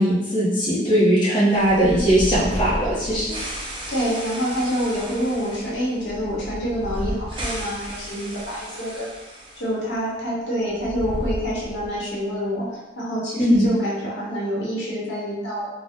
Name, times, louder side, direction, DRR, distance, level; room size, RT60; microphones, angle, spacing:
voice 1, 0.0-3.4 13.4-13.7, equal, 25° left, -9 dB, 0.8 m, -19 dB
sound 1, 1.5-9.7 9.9-10.0 10.7-12.0, equal, 30° right, 0.6 m, -33 dB
voice 2, 3.9-15.7, equal, 70° left, -6 dB, 1.0 m, -27 dB
2.7 x 2.2 x 3.5 m, 1.1 s
head